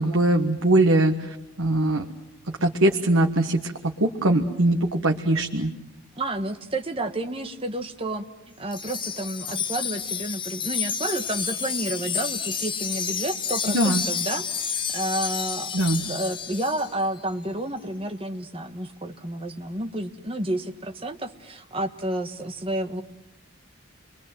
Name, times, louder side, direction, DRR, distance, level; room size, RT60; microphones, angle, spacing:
voice 1, 0.0-2.1 2.5-5.7 13.7-14.0 15.7-16.0, right 1 dB, 75° right, 3 dB, 1.5 m, -22 dB
voice 2, 6.2-8.2 8.6-23.0, right 1 dB, 25° right, 7 dB, 1.4 m, -30 dB
Wind chime, 8.7-16.9, left 7 dB, 20° left, 0.9 m, -30 dB
30.0 x 23.0 x 7.7 m, 0.93 s
head